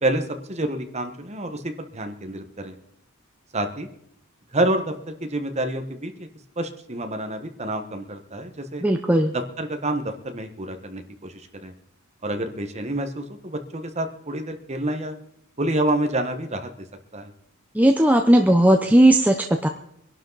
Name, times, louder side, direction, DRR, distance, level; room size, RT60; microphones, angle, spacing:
voice 1, 0.0-2.7 3.5-3.9 4.5-6.3 6.6-8.8 9.3-11.7 12.2-15.2 15.6-16.9 17.1-17.3, right 1 dB, 30° right, 6 dB, 1.4 m, -28 dB
voice 2, 8.8-9.3 17.7-19.7, right 1 dB, 5° right, 4 dB, 0.7 m, -17 dB
23.0 x 11.5 x 4.1 m, 0.73 s
head